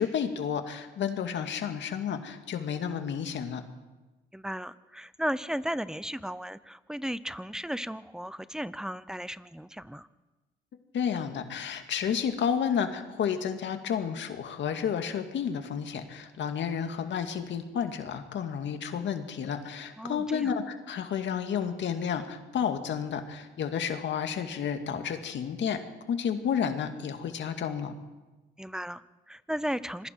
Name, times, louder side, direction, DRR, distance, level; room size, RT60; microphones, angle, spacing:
voice 1, 0.0-3.6 10.9-25.8 26.1-27.9, left 7 dB, 65° left, 6 dB, 2.2 m, -31 dB
voice 2, 4.3-10.1 20.0-20.5 28.6-30.1, equal, 5° right, 16 dB, 0.7 m, -35 dB
26.5 x 21.0 x 4.7 m, 1.2 s
cardioid pair, 90°, 20 cm